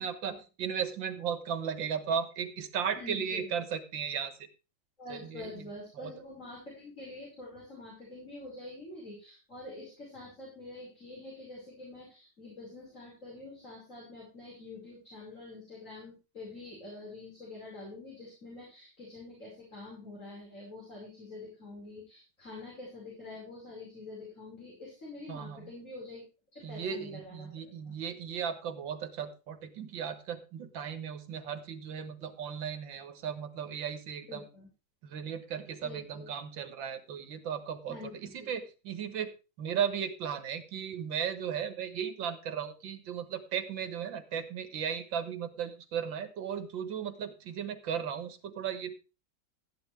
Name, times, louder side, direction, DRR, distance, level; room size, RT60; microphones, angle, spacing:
voice 1, 0.0-4.3 5.1-6.1 25.3-25.7 26.6-34.5 35.0-48.9, right 7 dB, 80° right, 10 dB, 2.0 m, -36 dB
voice 2, 3.0-3.5 5.0-26.2 26.5-27.5 34.3-34.7 35.8-36.3 37.9-38.5, left 2 dB, 40° left, -4 dB, 5.9 m, -46 dB
13.5 x 10.5 x 3.4 m, 0.30 s
omnidirectional pair, 2.0 m